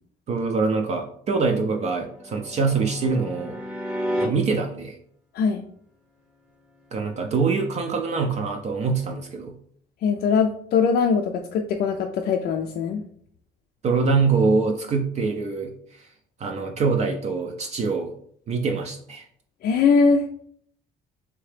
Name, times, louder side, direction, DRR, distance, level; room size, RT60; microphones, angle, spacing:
voice 1, 0.3-3.6 4.2-5.0 6.9-9.6 13.8-16.1 16.4-18.1 18.5-19.3, right 4 dB, 40° right, 3 dB, 0.4 m, -24 dB
sound 1, 1.4-4.3 7.2-8.5, equal, 5° right, 0.7 m, -33 dB
voice 2, 10.0-13.0 19.6-20.3, left 5 dB, 65° left, 2 dB, 0.4 m, -21 dB
3.4 x 2.8 x 3.2 m, 0.63 s
cardioid pair, 110°, 17 cm